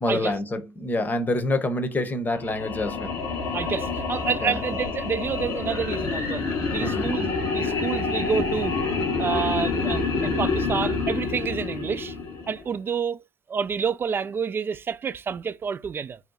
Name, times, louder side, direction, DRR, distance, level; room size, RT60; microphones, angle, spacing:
voice 1, 0.0-3.2 4.4-4.6 6.8-7.1, left 2 dB, 30° left, 0.9 m, -27 dB
sound 1, 2.3-12.7, left 4 dB, 75° left, 1.1 m, -27 dB
voice 2, 3.5-8.7 9.2-12.1 12.5-13.2 13.5-16.2, right 6 dB, 35° right, 0.3 m, -29 dB
2.8 x 2.2 x 3.9 m
hypercardioid pair, 55°, 6 cm